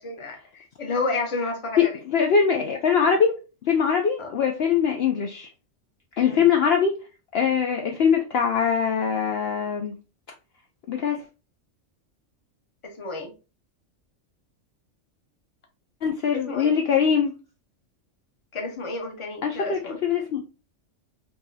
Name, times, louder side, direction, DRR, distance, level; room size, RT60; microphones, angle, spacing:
voice 1, 0.0-2.0 4.2-4.3 6.2-6.5 12.8-13.3 16.5-16.7 18.5-20.0, left 3 dB, 30° left, 4 dB, 0.7 m, -31 dB
voice 2, 1.8-3.3 3.7-5.5 6.2-6.9 7.3-10.0 10.9-11.2 16.0-17.3 19.4-20.4, left 7 dB, 65° left, 3 dB, 0.7 m, -22 dB
3.8 x 2.8 x 2.6 m, 0.32 s
omnidirectional pair, 1.3 m